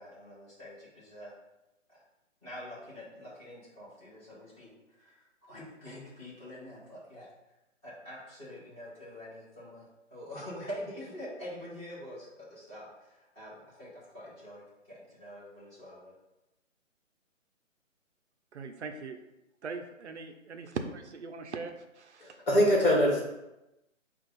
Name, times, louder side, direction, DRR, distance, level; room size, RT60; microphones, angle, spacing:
voice 1, 0.0-1.3 1.9-2.0 2.4-7.3 7.8-14.6 14.9-16.2, equal, 10° left, -12 dB, 1.1 m, -45 dB
voice 2, 18.5-19.2 19.6-22.4, right 4 dB, 60° right, 6 dB, 0.5 m, -40 dB
voice 3, 22.2-23.2, equal, 45° left, -3 dB, 1.6 m, -23 dB
5.2 x 2.3 x 4.0 m, 0.95 s
hypercardioid pair, 165°, 39 cm